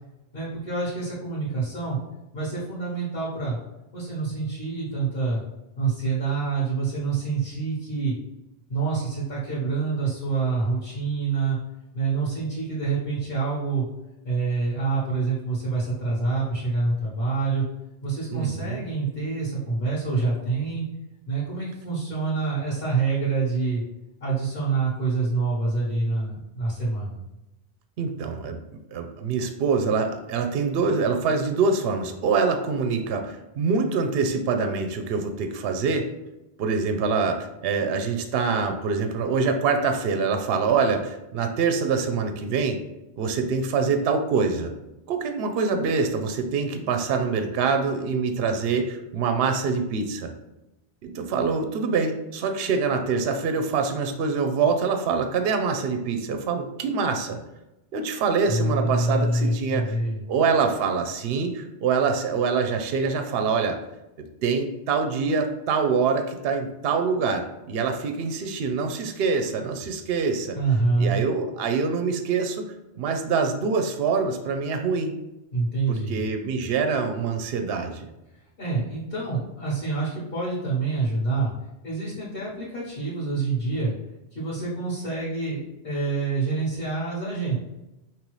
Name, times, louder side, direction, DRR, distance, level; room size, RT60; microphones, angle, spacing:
voice 1, 0.3-2.0 2.3-3.6 3.9-5.4 5.8-8.1 8.7-11.6 11.9-13.8 14.2-17.6 18.0-20.8 21.3-23.8 24.2-27.2 58.5-60.2 70.5-71.2 75.5-76.2 78.6-81.5 81.8-83.9 84.3-85.6 85.8-87.6, right 4 dB, 55° left, -8 dB, 1.5 m, -26 dB
voice 2, 18.3-18.8 28.0-28.6 28.9-36.1 36.6-42.8 43.2-44.7 45.1-50.3 51.0-57.4 57.9-59.9 60.3-63.8 64.4-70.6 71.0-72.6 73.0-75.1 75.9-78.1, right 5 dB, 65° right, 6 dB, 0.8 m, -25 dB
5.3 x 3.0 x 3.1 m, 0.95 s
omnidirectional pair, 1.1 m